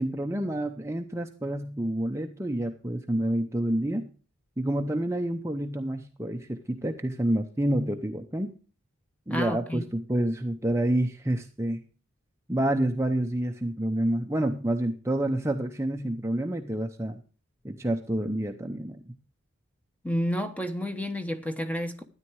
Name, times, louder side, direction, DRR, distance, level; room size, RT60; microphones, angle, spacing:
voice 1, 0.0-4.1 4.6-8.5 9.3-11.8 12.5-17.2 17.6-19.1, right 1 dB, 15° right, 0.7 m, -28 dB
voice 2, 9.3-9.9 20.0-22.0, equal, 5° left, 1.0 m, -30 dB
13.0 x 9.9 x 4.7 m
head